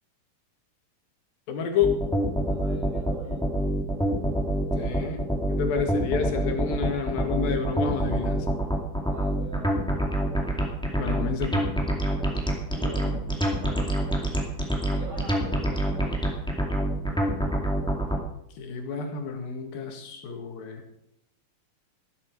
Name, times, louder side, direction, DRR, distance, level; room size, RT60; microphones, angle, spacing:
voice 1, 1.5-2.0 4.8-5.2 5.5-8.5 11.0-11.6 18.6-20.8, left 6 dB, 80° left, 4 dB, 3.6 m, -29 dB
sound 1, 1.8-18.2, right 1 dB, ahead, 1.5 m, -26 dB
voice 2, 2.5-3.5 9.1-9.7 12.6-13.9 14.9-16.2, right 2 dB, 60° right, -3 dB, 7.5 m, -42 dB
15.0 x 12.5 x 4.6 m, 0.77 s
omnidirectional pair, 4.1 m